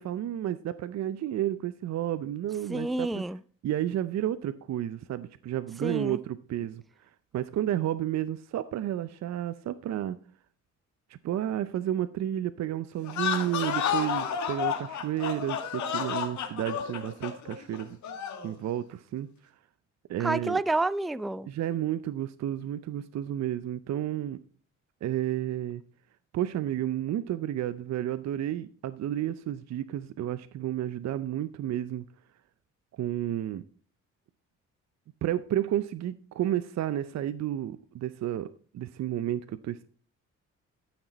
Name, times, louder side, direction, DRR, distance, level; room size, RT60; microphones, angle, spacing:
voice 1, 0.0-3.2 3.6-6.8 7.3-10.2 11.1-18.0 18.4-19.3 20.1-20.6 21.5-24.4 25.0-25.8 26.3-32.0 33.0-33.6 35.2-38.5 38.7-39.9, right 12 dB, 60° right, 0.6 m, -31 dB
voice 2, 2.7-3.4 5.8-6.2 20.2-21.5, right 2 dB, ahead, 0.3 m, -29 dB
sound 1, 13.0-18.5, left 8 dB, 70° left, 2.0 m, -31 dB
14.0 x 6.1 x 4.1 m
cardioid pair, 90°, 30 cm